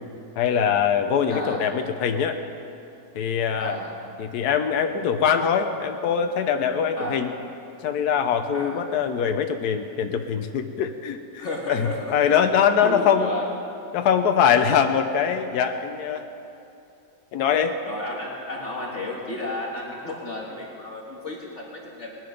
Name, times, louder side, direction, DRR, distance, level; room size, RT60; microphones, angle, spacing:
voice 1, 0.4-2.4 3.1-3.8 4.2-7.3 7.8-13.3 13.9-16.3 17.3-17.8, left 7 dB, 80° left, 6 dB, 1.3 m, -23 dB
voice 2, 1.3-1.6 3.6-4.0 6.9-7.2 8.5-8.8 11.4-12.4 12.8-13.5 17.8-22.2, left 1 dB, 50° left, -2 dB, 1.8 m, -32 dB
20.0 x 11.0 x 5.2 m, 2.8 s
omnidirectional pair, 1.7 m